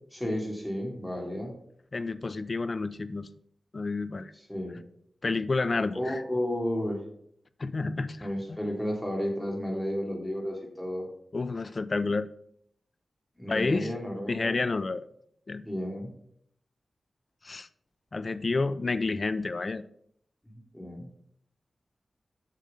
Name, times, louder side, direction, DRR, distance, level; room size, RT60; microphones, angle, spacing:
voice 1, 0.1-1.5 4.3-4.8 5.9-7.0 8.2-11.1 13.4-14.6 15.6-16.1 20.7-21.1, equal, 5° left, -1 dB, 2.8 m, -32 dB
voice 2, 1.9-3.3 3.7-4.3 5.2-6.2 7.6-8.3 11.3-12.3 13.5-13.9 14.3-15.1 15.5-15.6 17.4-17.7 18.1-19.8, left 3 dB, 45° left, 13 dB, 0.6 m, -29 dB
7.5 x 6.4 x 5.5 m, 0.68 s
wide cardioid pair, 100°, 0 cm